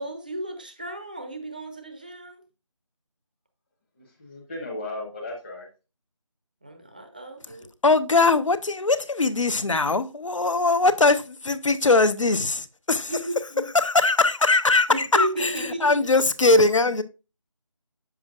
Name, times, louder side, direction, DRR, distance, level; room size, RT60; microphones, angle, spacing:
voice 1, 0.0-2.4 6.6-7.7 13.1-13.6 14.9-16.0, right 1 dB, 15° right, 0.6 m, -33 dB
voice 2, 4.0-5.7 16.7-16.8, left 2 dB, 20° left, 1.1 m, -33 dB
voice 3, 7.8-13.2 13.7-17.0, left 3 dB, 65° left, 0.9 m, -21 dB
8.6 x 7.1 x 2.4 m
figure-of-eight pair, 170°, 17 cm